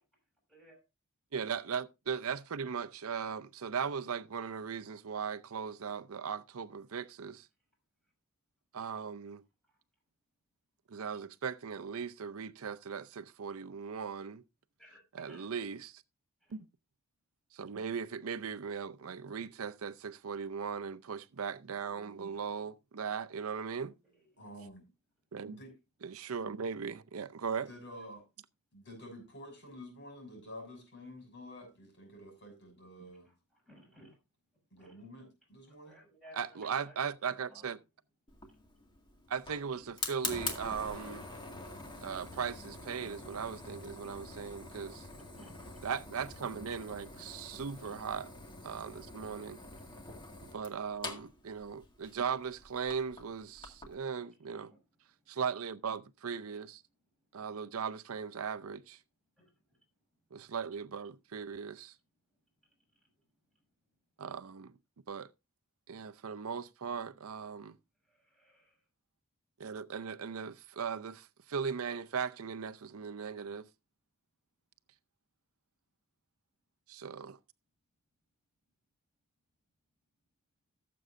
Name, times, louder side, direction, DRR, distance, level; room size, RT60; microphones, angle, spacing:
voice 1, 0.5-0.8 9.7-9.8 14.8-15.0 15.3-15.5 16.4-16.6 24.1-24.6 33.2-34.2 34.8-35.0 35.8-37.0 37.2-37.7 38.4-38.5 44.8-45.9 54.2-54.8 59.4-59.8 63.5-63.6 68.0-68.8, equal, ahead, 6.1 m, -60 dB
voice 2, 1.3-7.5 8.7-9.4 10.9-14.4 15.1-16.0 16.5-16.7 17.5-23.9 25.3-25.6 26.0-27.7 36.3-37.8 39.3-41.3 42.0-45.1 45.8-48.3 48.6-49.6 50.5-54.7 55.3-56.8 57.3-59.0 60.3-61.9 64.2-64.7 65.1-65.3 65.9-67.8 69.6-73.6 76.9-77.4, right 6 dB, 70° right, 0.6 m, -38 dB
voice 3, 24.4-24.9 25.5-25.7 27.7-28.2 28.7-33.3 34.7-36.0, left 1 dB, 50° left, 6.6 m, -49 dB
Fire, 38.3-53.9, left 2 dB, 20° left, 1.9 m, -45 dB
17.5 x 7.8 x 2.5 m
head